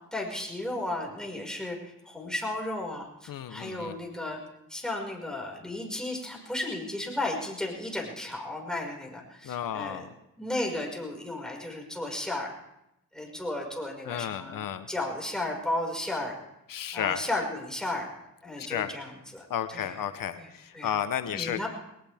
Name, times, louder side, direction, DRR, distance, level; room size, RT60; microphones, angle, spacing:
voice 1, 0.1-4.4 4.7-10.1 10.4-12.5 13.1-16.4 16.9-18.1 18.4-20.0 20.3-21.0 21.3-21.7, left 1 dB, ahead, -1 dB, 5.4 m, -34 dB
voice 2, 3.3-4.0 9.4-10.1 14.1-14.9 16.7-17.2 18.6-18.9 19.5-21.7, left 9 dB, 80° left, 10 dB, 0.9 m, -32 dB
21.0 x 19.0 x 3.5 m, 0.86 s
cardioid pair, 70°, 33 cm